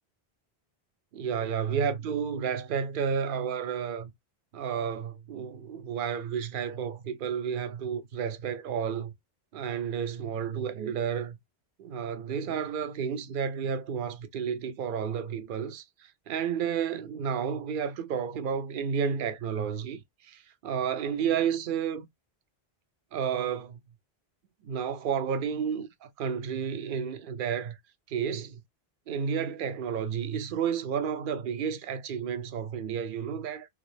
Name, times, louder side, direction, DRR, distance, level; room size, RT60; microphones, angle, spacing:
voice 1, 1.1-4.1 4.5-9.1 9.5-11.4 11.8-22.1 23.1-23.8 24.6-27.8 28.1-28.6 29.1-33.7, right 7 dB, 60° right, 0.7 m, -31 dB
3.3 x 2.5 x 3.3 m
omnidirectional pair, 1.1 m